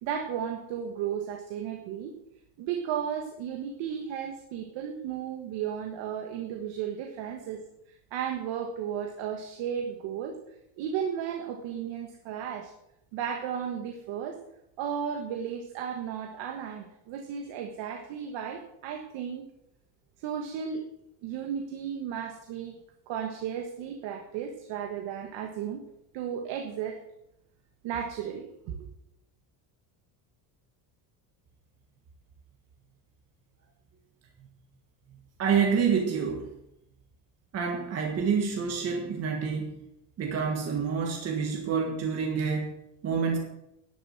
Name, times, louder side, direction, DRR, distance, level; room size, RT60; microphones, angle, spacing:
voice 1, 0.0-2.1 2.6-7.6 8.1-10.4 10.8-12.7 13.1-14.4 14.8-19.5 20.2-20.8 21.2-22.8 23.1-25.8 26.1-27.0 27.8-28.9, right 8 dB, 80° right, 3 dB, 1.5 m, -34 dB
voice 2, 35.4-36.5 37.5-39.7 40.2-42.7 43.0-43.4, right 6 dB, 35° right, 1 dB, 1.5 m, -27 dB
11.5 x 6.9 x 7.5 m, 0.84 s
cardioid pair, 180°, 43 cm